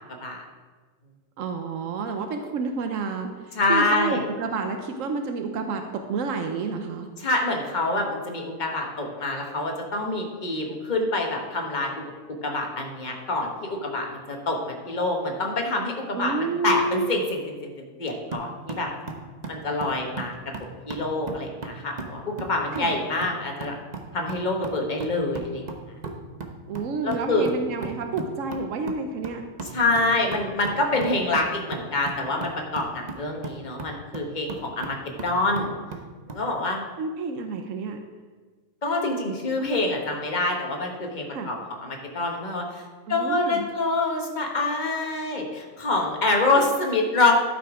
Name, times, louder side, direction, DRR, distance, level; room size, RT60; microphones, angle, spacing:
voice 1, 1.4-7.1 16.1-17.1 22.7-23.0 26.7-29.4 37.0-38.0 41.3-41.6 43.1-43.7, right 4 dB, 90° right, 6 dB, 1.1 m, -29 dB
voice 2, 3.5-4.2 7.2-11.9 12.4-17.7 18.0-18.9 19.5-20.3 20.9-23.8 24.1-25.6 27.0-27.5 29.7-35.0 35.2-35.7 36.3-36.8 38.8-41.6 41.8-42.8 43.1-47.3, left 2 dB, 35° left, 1 dB, 1.5 m, -26 dB
sound 1, 18.3-36.5, right 3 dB, 35° right, 1.0 m, -38 dB
12.0 x 6.0 x 4.9 m, 1.4 s
omnidirectional pair, 1.3 m